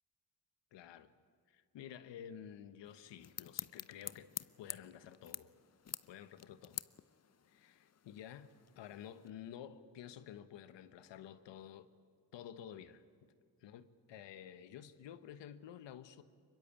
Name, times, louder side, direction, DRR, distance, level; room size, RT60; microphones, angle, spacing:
voice 1, 0.7-1.1 1.5-4.3 4.6-5.5 6.1-6.8 7.5-11.9 12.3-13.0 13.6-16.2, left 9 dB, 80° left, 1.2 m, -51 dB
sound 1, 2.9-9.3, left 8 dB, 35° left, 0.7 m, -49 dB
24.0 x 22.0 x 8.5 m
supercardioid pair, 40°, 43 cm